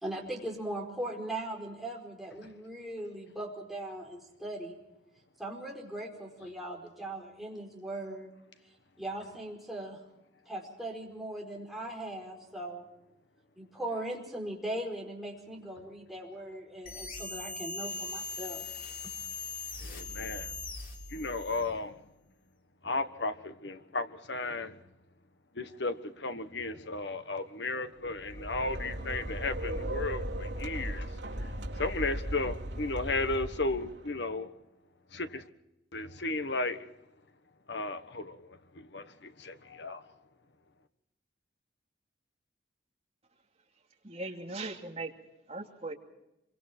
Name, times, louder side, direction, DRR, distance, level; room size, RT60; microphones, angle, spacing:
voice 1, 0.0-4.7 5.4-8.3 9.0-10.0 10.5-12.9 13.6-18.6, right 1 dB, ahead, 4.7 m, -39 dB
sound 1, 16.9-21.7, left 3 dB, 45° left, 3.4 m, -40 dB
voice 2, 19.8-20.6 21.1-22.0 22.8-24.8 25.5-34.5 35.1-35.4 35.9-36.9 37.7-40.1, left 3 dB, 65° left, 1.4 m, -35 dB
sound 2, 28.1-34.1, right 1 dB, 75° right, 3.3 m, -37 dB
voice 3, 44.0-45.1 45.5-45.9, right 2 dB, 35° right, 2.7 m, -38 dB
26.0 x 24.0 x 4.5 m
head